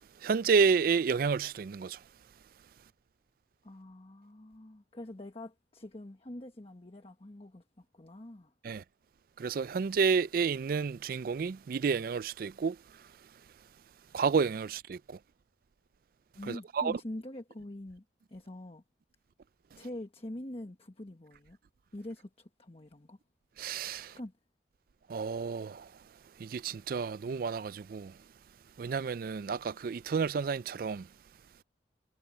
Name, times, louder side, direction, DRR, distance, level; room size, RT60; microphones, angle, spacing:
voice 1, 0.2-2.0 8.6-8.8 9.4-12.8 14.1-15.0 16.5-16.9 23.6-24.1 25.1-25.8 26.4-28.1 28.8-31.0, right 5 dB, 55° right, 0.4 m, -30 dB
voice 2, 3.6-8.5 16.3-18.8 19.7-21.6 21.9-23.2 24.2-24.3, left 1 dB, 35° left, 1.2 m, -45 dB
head